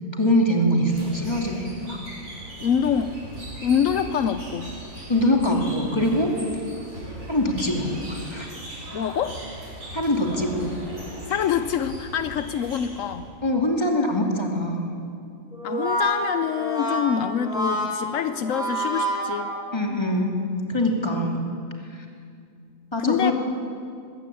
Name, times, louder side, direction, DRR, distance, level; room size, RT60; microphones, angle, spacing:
voice 1, 0.1-2.0 5.1-6.3 7.3-8.6 9.9-10.7 13.4-14.9 19.7-20.3 20.7-21.4 21.9-22.0 22.9-23.3, left 1 dB, 20° left, 0 dB, 2.6 m, -23 dB
sound 1, 0.9-13.3, right 1 dB, 90° right, 5.3 m, -39 dB
voice 2, 2.6-3.1 3.6-4.7 8.9-9.4 11.3-13.3 15.6-19.5 21.1-21.2 23.0-23.3, left 8 dB, 80° left, 10 dB, 1.1 m, -25 dB
Brass instrument, 15.5-20.0, equal, 5° right, 6.2 m, -28 dB
21.0 x 16.0 x 8.6 m, 2.4 s
omnidirectional pair, 1.4 m